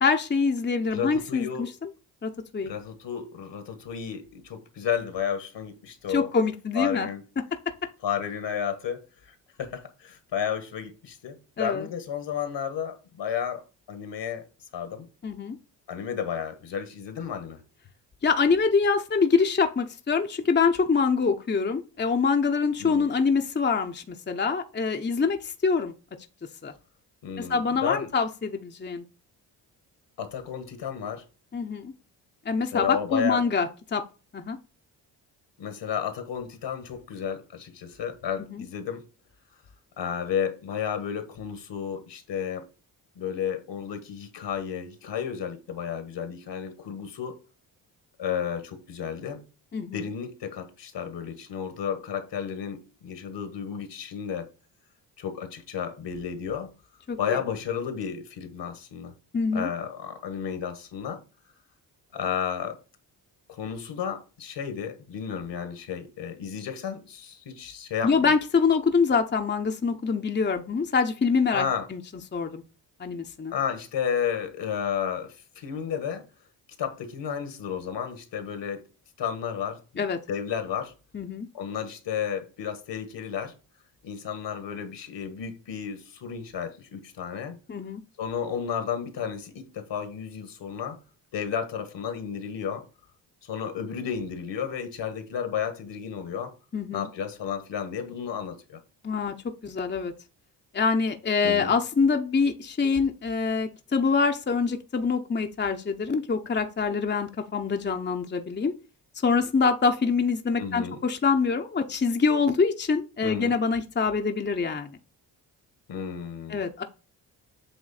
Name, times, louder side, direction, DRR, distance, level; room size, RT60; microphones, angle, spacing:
voice 1, 0.0-1.7 2.2-2.7 6.1-7.1 11.6-11.9 15.2-15.6 18.2-25.9 26.6-26.7 27.5-29.0 31.5-31.9 32.5-34.0 34.3-34.6 38.5-38.6 49.7-50.0 57.1-57.2 59.3-59.7 68.0-72.0 72.3-72.6 73.0-73.5 80.0-80.2 81.1-81.5 87.7-88.0 96.7-97.1 99.0-99.3 99.6-100.1 100.7-108.7 109.2-114.9 116.5-116.8, left 5 dB, 25° left, 0.8 m, -25 dB
voice 2, 0.9-1.7 2.6-6.3 6.7-7.2 8.0-14.5 14.7-15.1 15.9-17.6 22.8-23.1 27.2-28.1 30.2-31.2 32.7-33.4 35.6-39.0 40.0-42.6 43.1-47.4 48.2-49.4 49.9-54.5 55.2-56.7 57.2-59.1 59.5-61.2 62.1-62.8 63.5-68.3 71.5-71.9 73.5-76.3 76.8-78.8 79.2-80.9 81.5-83.5 84.0-87.6 88.2-91.0 91.3-92.8 93.4-96.5 96.9-98.8 101.4-101.7 110.6-111.0 113.2-113.5 115.9-116.6, left 7 dB, 65° left, 1.6 m, -32 dB
8.0 x 3.1 x 4.2 m
supercardioid pair, 50°, 46 cm